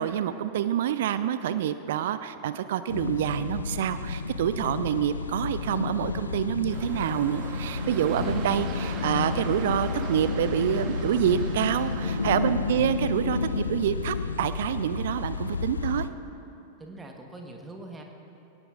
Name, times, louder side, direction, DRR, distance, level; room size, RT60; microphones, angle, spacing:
voice 1, 0.0-16.1, right 10 dB, 55° right, 12 dB, 0.4 m, -27 dB
sound 1, 2.9-16.1, left 4 dB, 75° left, 0.5 m, -31 dB
sound 2, 6.7-12.3, right 6 dB, 35° right, 1.1 m, -40 dB
voice 2, 12.0-12.5 16.8-18.0, right 2 dB, 15° right, 2 dB, 1.3 m, -43 dB
21.5 x 18.0 x 2.5 m, 2.8 s
figure-of-eight pair, 90°, 0 cm